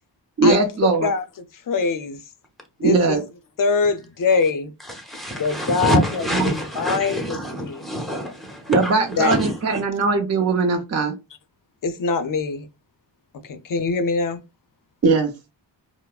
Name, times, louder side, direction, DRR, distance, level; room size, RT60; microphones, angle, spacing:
voice 1, 0.4-1.1 2.8-3.2 8.7-11.2 15.0-15.3, right 3 dB, 35° right, 0.6 m, -19 dB
voice 2, 1.7-2.2 2.8-3.2 3.6-4.7 5.4-7.8 9.2-9.4 11.8-12.7 13.5-14.4, left 4 dB, 50° left, 0.5 m, -23 dB
voice 3, 4.8-9.6, equal, ahead, 1.0 m, -26 dB
4.5 x 2.0 x 2.3 m
wide cardioid pair, 95°, 44 cm